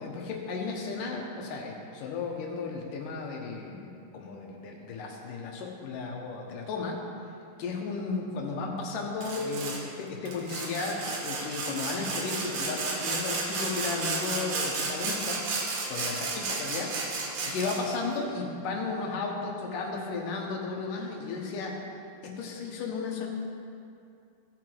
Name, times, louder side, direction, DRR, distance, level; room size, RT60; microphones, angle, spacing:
voice 1, 0.0-7.0 7.6-15.4 15.9-16.2 16.4-21.8 22.2-23.3, left 4 dB, 75° left, 0 dB, 2.7 m, -34 dB
Sawing, 9.2-9.8 10.3-18.0, right 3 dB, 65° right, 2.5 m, -33 dB
16.5 x 5.9 x 4.6 m, 2.5 s
omnidirectional pair, 4.0 m